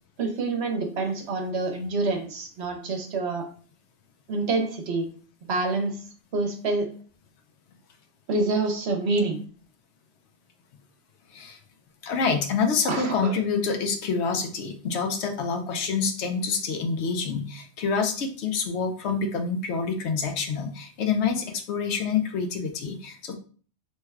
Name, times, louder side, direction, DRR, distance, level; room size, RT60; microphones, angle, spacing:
voice 1, 0.2-3.4 4.3-5.1 5.5-6.0 6.3-6.9 8.3-9.4 12.9-13.4, right 3 dB, 65° right, 3 dB, 1.0 m, -27 dB
voice 2, 12.0-23.3, left 5 dB, 70° left, 5 dB, 0.9 m, -27 dB
3.1 x 2.2 x 3.4 m, 0.42 s
omnidirectional pair, 1.2 m